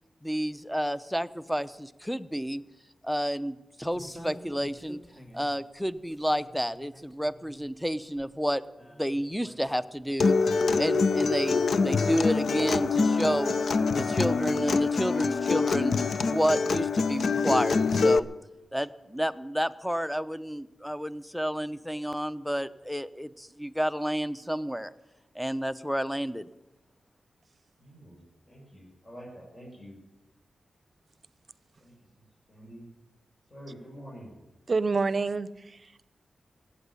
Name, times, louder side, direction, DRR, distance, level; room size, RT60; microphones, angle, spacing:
voice 1, 0.2-2.6 3.0-5.0 5.3-8.6 8.9-10.4 10.8-13.5 13.9-16.0 16.3-18.3 18.7-24.9 25.3-26.5, equal, ahead, 15 dB, 0.8 m, -30 dB
sound 1, 3.9-5.6 6.0-7.6 8.2-8.3 8.8-10.1 10.8-10.9, equal, 25° left, 3.1 m, -48 dB
Acoustic guitar, 10.2-18.2, left 4 dB, 70° left, 0.6 m, -25 dB
voice 2, 27.8-30.0 31.8-31.9 32.5-32.9 33.5-34.3, equal, 40° left, -5 dB, 6.4 m, -47 dB
voice 3, 34.7-36.1, right 4 dB, 50° right, 17 dB, 0.7 m, -28 dB
15.5 x 8.7 x 9.8 m, 0.98 s
cardioid pair, 50°, 0 cm